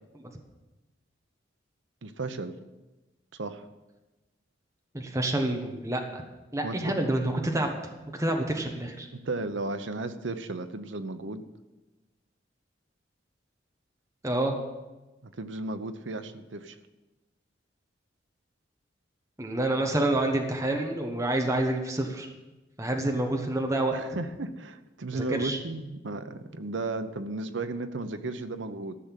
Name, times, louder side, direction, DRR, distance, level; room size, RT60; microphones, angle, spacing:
voice 1, 2.0-2.6 3.3-3.6 6.6-6.9 9.2-11.4 15.2-16.8 23.9-29.0, right 2 dB, 80° right, 9 dB, 0.9 m, -34 dB
voice 2, 4.9-6.2 6.5-7.8 8.2-9.1 14.2-14.6 19.4-22.3 22.8-24.0 25.1-25.6, right 1 dB, 15° right, 2 dB, 1.2 m, -28 dB
14.0 x 6.6 x 7.4 m, 1.1 s
head